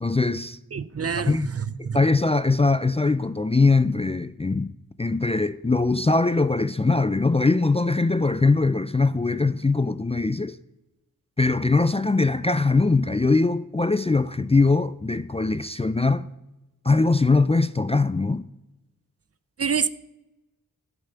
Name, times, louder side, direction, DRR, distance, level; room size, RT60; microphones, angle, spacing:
voice 1, 0.0-0.6 1.3-1.5 1.8-4.7 5.0-10.6 11.4-16.2 16.8-18.5, left 3 dB, 20° left, 0.3 m, -21 dB
voice 2, 0.7-2.0 19.6-19.9, right 6 dB, 45° right, 0.5 m, -27 dB
11.5 x 8.2 x 5.8 m
wide cardioid pair, 80°, 35 cm